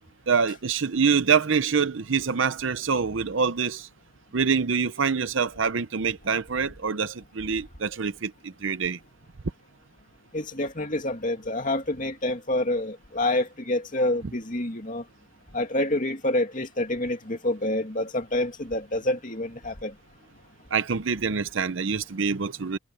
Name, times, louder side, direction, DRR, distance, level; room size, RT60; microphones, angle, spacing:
voice 1, 0.3-3.9 4.3-8.3 8.6-9.0 20.7-22.8, right 5 dB, 60° right, 0.7 m, -25 dB
voice 2, 10.3-15.0 15.5-19.9, left 1 dB, 40° left, 2.5 m, -27 dB
head